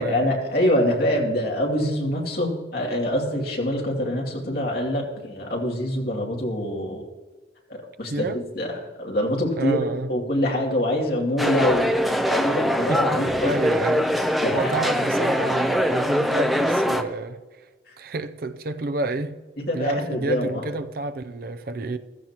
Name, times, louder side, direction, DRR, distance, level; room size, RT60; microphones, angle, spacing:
voice 1, 0.0-7.1 7.7-8.7 9.0-9.8 10.1-12.0 12.3-13.6 14.4-14.8 17.9-18.0 19.7-20.7, left 1 dB, 55° left, 2.6 m, -25 dB
voice 2, 9.6-10.1 12.9-13.1 13.4-17.6 18.0-19.4 19.7-22.0, right 3 dB, 50° right, 0.5 m, -29 dB
sound 1, 11.4-17.0, equal, ahead, 0.6 m, -22 dB
15.0 x 14.0 x 3.0 m
head